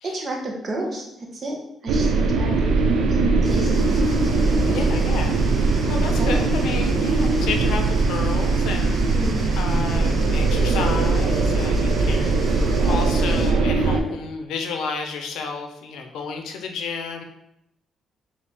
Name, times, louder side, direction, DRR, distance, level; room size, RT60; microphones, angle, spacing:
voice 1, 0.0-1.1 1.3-3.7 6.2-6.4 9.0-9.6, right 1 dB, 45° right, 0 dB, 1.0 m, -31 dB
sound 1, 1.9-14.0, right 3 dB, 85° right, 0.5 m, -20 dB
sound 2, 3.4-13.5, equal, 25° left, 1.3 m, -37 dB
voice 2, 4.7-5.4 5.9-9.0 9.6-12.4 12.8-17.2, left 5 dB, 85° left, 5 dB, 0.5 m, -31 dB
4.3 x 2.7 x 3.4 m, 0.81 s
cardioid pair, 90°, 0 cm